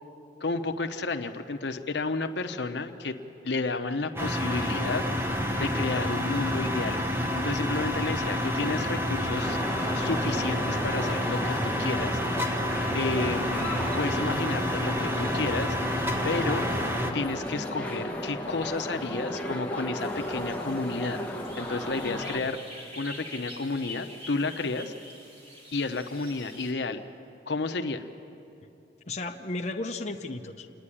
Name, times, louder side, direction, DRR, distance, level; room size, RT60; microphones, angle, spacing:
voice 1, 0.4-3.2 3.4-5.0 5.6-7.0 7.3-9.6 9.9-12.2 12.9-15.8 16.2-16.6 17.1-21.2 21.6-22.6 23.0-24.9 25.7-27.0 27.5-28.0, left 3 dB, 70° left, 7 dB, 0.9 m, -31 dB
sound 1, 4.2-17.1, equal, 15° right, 1.1 m, -29 dB
sound 2, 9.4-22.4, equal, 10° left, 1.0 m, -34 dB
sound 3, 20.0-26.7, left 1 dB, 35° right, 4.0 m, -46 dB
voice 2, 22.0-22.5 29.1-30.7, left 2 dB, 40° left, 2 dB, 0.7 m, -35 dB
27.5 x 9.8 x 10.0 m, 2.8 s
head